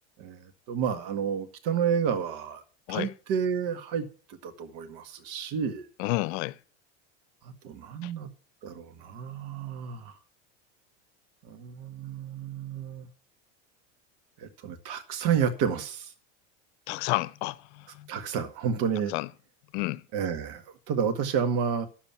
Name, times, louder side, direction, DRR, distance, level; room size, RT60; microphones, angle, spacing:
voice 1, 0.2-2.6 2.9-5.9 7.4-8.3 8.6-10.1 11.5-13.1 14.4-16.1 18.1-19.1 20.1-21.9, right 7 dB, 60° right, 1.7 m, -30 dB
voice 2, 6.0-6.6 8.0-8.1 16.9-18.1 19.1-19.3 19.7-20.0, left 21 dB, 65° left, 0.7 m, -30 dB
9.6 x 7.4 x 5.8 m
hypercardioid pair, 95°, 35 cm